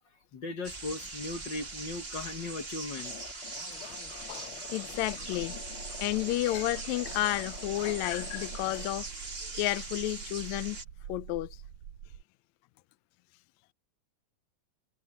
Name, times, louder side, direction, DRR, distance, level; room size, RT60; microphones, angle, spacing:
voice 1, 0.3-3.1, left 3 dB, 45° left, 1.9 m, -38 dB
sound 1, 0.6-10.8, right 3 dB, 25° right, 2.0 m, -41 dB
sound 2, 3.0-8.9, left 10 dB, 65° left, 1.4 m, -47 dB
voice 2, 4.3-5.5 6.0-9.1 9.5-10.8 11.1-11.6, left 17 dB, 80° left, 1.9 m, -31 dB
sound 3, 5.0-12.2, right 9 dB, 75° right, 2.3 m, -46 dB
omnidirectional pair, 3.3 m